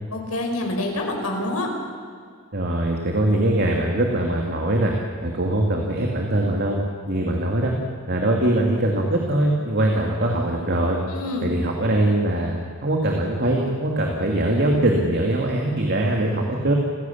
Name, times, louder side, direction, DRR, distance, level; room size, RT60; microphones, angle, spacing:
voice 1, 0.1-1.7 11.1-11.6, left 1 dB, 85° left, 1 dB, 5.5 m, -27 dB
voice 2, 2.5-4.9 5.2-7.7 8.1-11.0 11.4-16.7, right 1 dB, 50° right, 1 dB, 2.5 m, -22 dB
28.5 x 16.5 x 7.3 m, 2.1 s
head